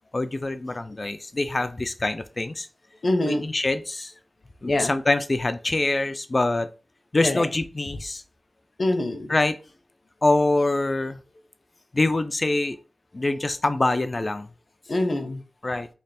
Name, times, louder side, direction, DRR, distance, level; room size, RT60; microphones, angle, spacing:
voice 1, 0.1-2.7 3.3-4.1 4.6-6.7 7.1-8.2 9.3-9.6 10.2-11.2 11.9-12.8 13.1-14.5 15.6-15.9, left 2 dB, 40° left, 0.4 m, -24 dB
voice 2, 3.0-3.5 4.6-5.0 7.2-7.5 8.8-9.3 14.9-15.4, left 1 dB, 55° left, 0.8 m, -24 dB
3.3 x 2.4 x 4.1 m
cardioid pair, 50°, 0 cm